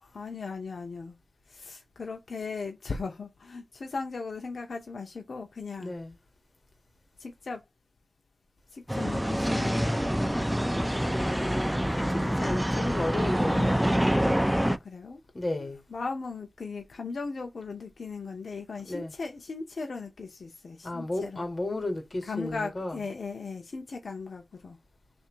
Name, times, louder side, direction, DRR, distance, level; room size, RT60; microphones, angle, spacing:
voice 1, 0.0-1.2 1.5-6.0 7.2-7.6 8.7-10.0 13.5-13.8 14.7-15.2 15.9-21.4 22.2-24.8, left 4 dB, 90° left, 0.7 m, -38 dB
voice 2, 5.8-6.1 11.0-13.8 15.3-15.8 18.8-19.1 20.8-23.0, left 2 dB, 45° left, 1.5 m, -34 dB
sound 1, 8.9-14.8, equal, 5° right, 0.4 m, -26 dB
3.3 x 2.6 x 4.5 m
wide cardioid pair, 70°, 0 cm